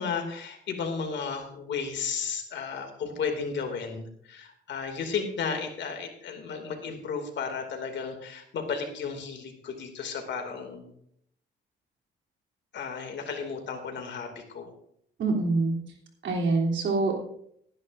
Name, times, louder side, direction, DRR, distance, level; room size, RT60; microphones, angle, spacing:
voice 1, 0.0-10.9 12.7-14.7, left 5 dB, 65° left, 4 dB, 2.6 m, -34 dB
voice 2, 15.2-15.8 16.2-17.1, right 3 dB, 65° right, -1 dB, 3.4 m, -25 dB
19.0 x 10.5 x 2.6 m, 0.69 s
cardioid pair, 90°, 20 cm